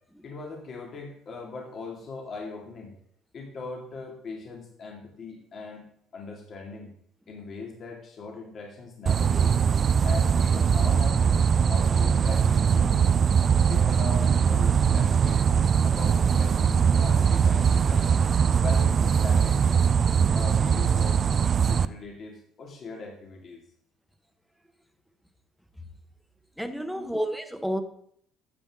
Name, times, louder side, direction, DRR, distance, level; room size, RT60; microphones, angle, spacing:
voice 1, 0.2-2.9 3.3-5.8 6.1-6.9 7.3-9.6 10.0-13.2 13.7-15.5 15.8-18.2 18.6-19.9 20.3-21.3 21.6-23.6 26.9-27.2, left 4 dB, 45° left, 0 dB, 2.3 m, -40 dB
sound 1, 9.1-21.9, right 7 dB, 40° right, 0.4 m, -21 dB
voice 2, 26.6-27.8, equal, ahead, 7 dB, 1.1 m, -30 dB
12.5 x 7.9 x 3.7 m, 0.68 s
cardioid pair, 115°, 0 cm